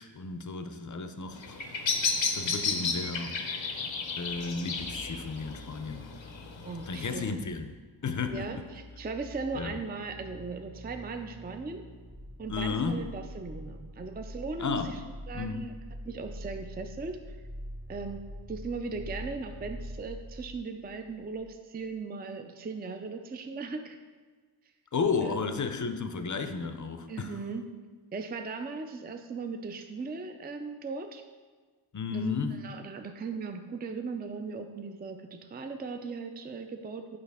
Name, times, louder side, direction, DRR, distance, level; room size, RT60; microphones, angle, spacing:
voice 1, 0.0-1.6 2.3-3.4 4.2-6.1 6.9-7.8 8.0-8.6 9.5-9.8 12.5-13.0 14.6-14.9 15.3-15.7 24.9-27.4 31.9-32.7, left 5 dB, 45° left, 0.5 m, -33 dB
Bird vocalization bird call bird song, 1.3-7.3, left 4 dB, 80° left, 0.7 m, -33 dB
sound 1, 4.0-21.6 21.8-21.9, equal, 60° right, 1.2 m, -45 dB
voice 2, 6.6-7.4 8.3-11.8 12.4-15.0 15.3-15.7 16.0-17.4 17.9-24.0 25.2-25.4 27.1-27.6 28.1-31.2 32.1-32.3 32.6-37.2, right 4 dB, 25° right, 0.4 m, -38 dB
6.9 x 5.3 x 3.5 m
wide cardioid pair, 55°, 45 cm